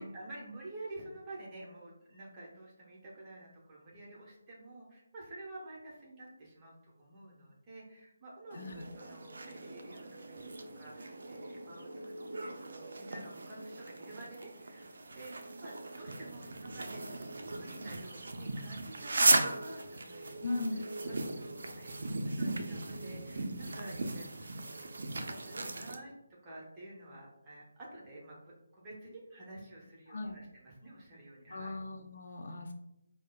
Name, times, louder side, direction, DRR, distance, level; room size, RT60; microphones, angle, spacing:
voice 1, 0.0-12.1 12.4-17.0 17.4-26.1 26.4-31.8, right 2 dB, 20° right, -4 dB, 0.8 m, -50 dB
voice 2, 8.5-8.9 20.4-20.8 30.1-30.4 31.5-32.7, left 2 dB, 50° left, 3 dB, 0.4 m, -38 dB
sound 1, 8.5-26.0, right 2 dB, 60° right, 0.4 m, -37 dB
4.6 x 2.1 x 2.2 m, 0.89 s
figure-of-eight pair, 150°, 0 cm